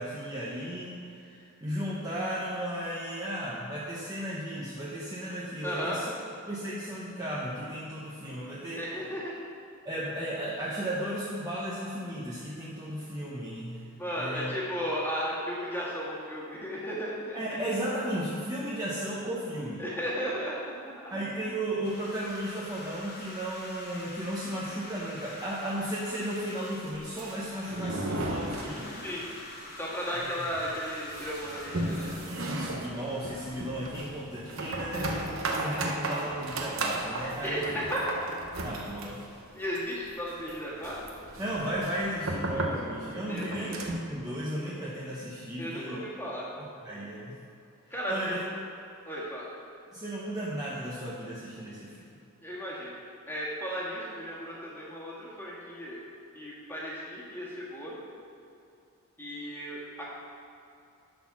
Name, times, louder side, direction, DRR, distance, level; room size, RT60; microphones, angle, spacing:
voice 1, 0.0-6.0 6.5-8.8 9.8-13.9 14.1-14.5 17.3-19.8 21.1-29.0 30.1-30.5 32.3-37.6 38.6-39.2 41.4-46.0 46.8-47.4 48.1-48.4 49.9-52.1, right 1 dB, 15° right, -7 dB, 0.9 m, -35 dB
voice 2, 5.6-6.0 8.8-9.3 14.0-17.6 19.8-21.1 29.0-29.3 29.7-32.1 37.4-38.0 39.5-41.0 43.3-43.7 45.6-46.5 47.9-48.6 49.0-49.4 52.4-53.0 53.3-56.0 56.3-58.0 59.2-60.0, equal, 10° left, -6 dB, 1.7 m, -35 dB
sound 1, 21.8-33.5, left 2 dB, 45° left, 1.2 m, -46 dB
sound 2, 26.9-29.3 29.5-29.6 30.0-30.1 30.5-44.2, right 2 dB, 65° right, 0.9 m, -35 dB
11.5 x 4.2 x 5.9 m, 2.6 s
head